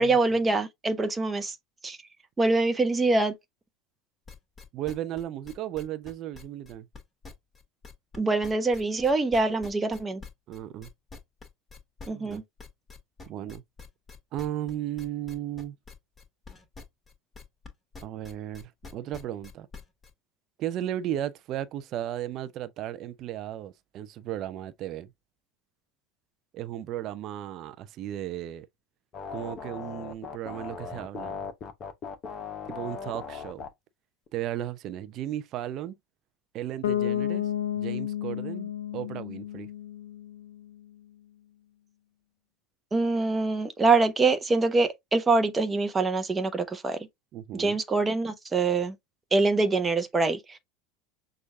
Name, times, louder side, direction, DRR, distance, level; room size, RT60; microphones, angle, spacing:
voice 1, 0.0-1.6 1.8-2.0 2.4-3.3 8.1-10.2 12.1-12.4 42.9-47.0 47.5-48.9 49.3-50.6, right 3 dB, 15° right, 0.8 m, -24 dB
sound 1, 4.3-8.2 8.4-17.7 17.9-20.1, left 4 dB, 15° left, 1.7 m, -46 dB
voice 2, 4.7-6.9 10.5-10.9 12.1-12.4 13.3-13.6 14.3-15.8 18.0-19.7 20.6-25.1 26.5-28.7 29.3-31.4 32.7-33.6 34.3-36.0 36.5-39.7 47.3-47.8, right 12 dB, 45° right, 0.5 m, -35 dB
sound 2, 29.1-33.7 34.3-34.4, left 6 dB, 35° left, 0.9 m, -38 dB
Bass guitar, 36.8-40.7, left 11 dB, 70° left, 0.4 m, -31 dB
6.2 x 2.4 x 2.6 m
figure-of-eight pair, 80°, 0 cm